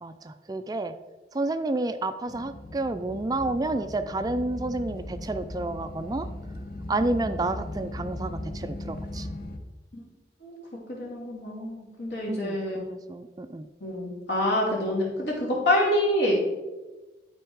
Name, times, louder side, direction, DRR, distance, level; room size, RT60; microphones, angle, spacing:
voice 1, 0.0-1.0 1.3-6.3 6.9-9.3 12.3-13.7, right 2 dB, 20° right, 10 dB, 0.3 m, -30 dB
sound 1, 2.3-9.6, left 1 dB, 50° left, 0.9 m, -38 dB
voice 2, 10.9-12.8 13.8-16.3, left 1 dB, 70° left, -3 dB, 2.8 m, -26 dB
12.0 x 4.6 x 4.7 m, 1.2 s
head